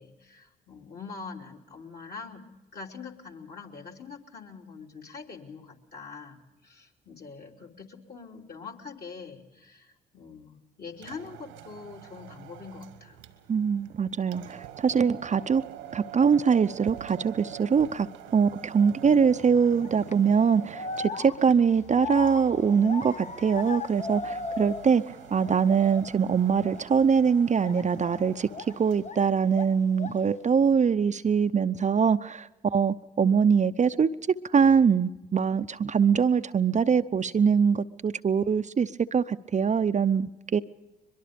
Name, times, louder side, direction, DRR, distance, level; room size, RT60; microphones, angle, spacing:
voice 1, 0.0-13.2, left 5 dB, 50° left, 0 dB, 3.2 m, -44 dB
sound 1, 10.9-29.2, right 11 dB, 85° right, 1.5 m, -46 dB
voice 2, 13.5-15.6 15.9-18.1 18.3-28.5 28.8-34.1 34.5-40.6, right 6 dB, 35° right, 10 dB, 0.7 m, -23 dB
sound 2, 19.8-20.1 20.7-25.1 25.4-26.1 26.6-26.8 27.6-29.3 29.5-30.3, left 4 dB, 35° left, 0.9 m, -37 dB
22.5 x 22.5 x 5.2 m, 1.0 s
hypercardioid pair, 50°, 20 cm